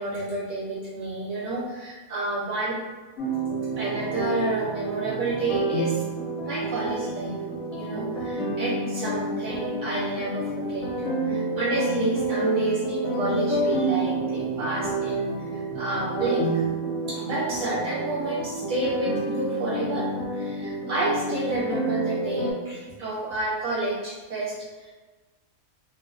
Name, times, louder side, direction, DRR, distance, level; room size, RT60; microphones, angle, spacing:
voice 1, 0.0-2.8 3.8-6.0 6.4-7.4 7.7-10.9 11.2-16.6 17.1-20.1 20.3-24.9, right 2 dB, 45° right, -7 dB, 0.8 m, -30 dB
sound 1, 3.2-22.5, right 2 dB, 65° left, 0.8 m, -29 dB
2.3 x 2.2 x 2.4 m, 1.3 s
omnidirectional pair, 1.4 m